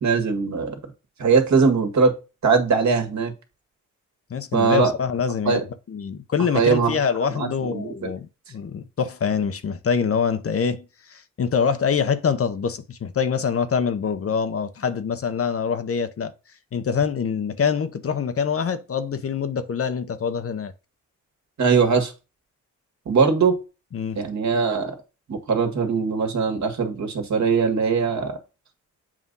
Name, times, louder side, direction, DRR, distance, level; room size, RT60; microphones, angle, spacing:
voice 1, 0.0-0.8 1.2-2.1 2.4-3.3 4.5-4.9 5.5-5.6 6.5-7.0 7.4-8.1 21.6-22.1 23.1-23.6 24.1-25.0 25.3-28.4, right 5 dB, 60° right, 1.8 m, -21 dB
voice 2, 4.3-5.6 5.9-16.3 16.7-20.7 23.9-24.2, left 6 dB, 45° left, 0.7 m, -25 dB
7.4 x 2.6 x 5.3 m
cardioid pair, 65°, 32 cm